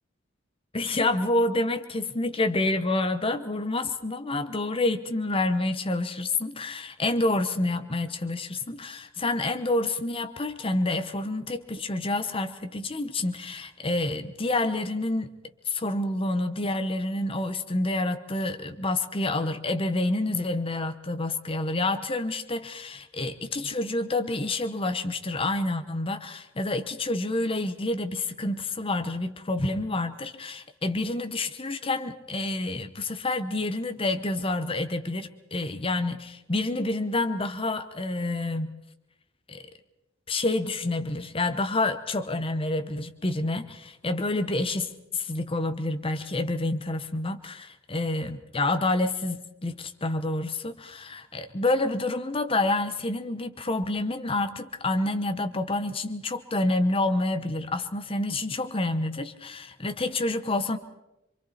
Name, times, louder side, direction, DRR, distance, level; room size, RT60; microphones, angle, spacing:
voice 1, 0.7-15.3 15.7-38.7 39.5-39.6 40.3-60.8, left 2 dB, 30° left, 8 dB, 1.0 m, -28 dB
27.0 x 24.5 x 4.3 m, 0.91 s
head